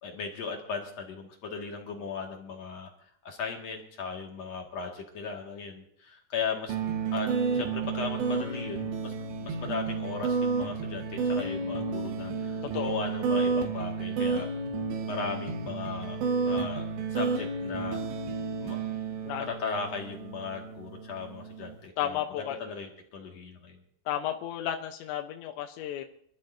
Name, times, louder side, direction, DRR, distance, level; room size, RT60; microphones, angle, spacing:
voice 1, 0.0-6.8 7.1-9.1 9.4-14.5 15.1-16.2 16.5-16.9 17.1-18.0 18.6-18.8 19.3-23.8, left 5 dB, 50° left, 1 dB, 2.5 m, -37 dB
sound 1, 6.7-21.8, right 4 dB, 80° right, 3.6 m, -31 dB
voice 2, 22.0-22.6 24.1-26.1, left 11 dB, 90° left, 5 dB, 3.2 m, -33 dB
26.0 x 13.5 x 2.7 m, 0.65 s
omnidirectional pair, 5.0 m